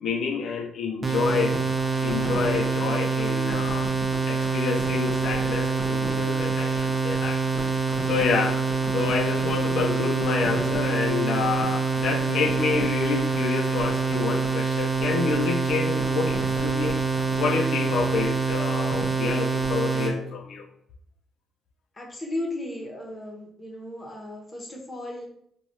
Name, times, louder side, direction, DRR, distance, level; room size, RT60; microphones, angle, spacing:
voice 1, 0.0-1.7 2.0-3.9 4.3-7.7 8.1-17.0 17.4-20.7, left 5 dB, 70° left, 0.4 m, -28 dB
sound 1, 1.0-20.1, right 4 dB, 30° right, 0.7 m, -25 dB
voice 2, 22.0-25.3, left 1 dB, 25° left, 0.8 m, -35 dB
3.2 x 2.2 x 2.7 m
cardioid pair, 90°, 0 cm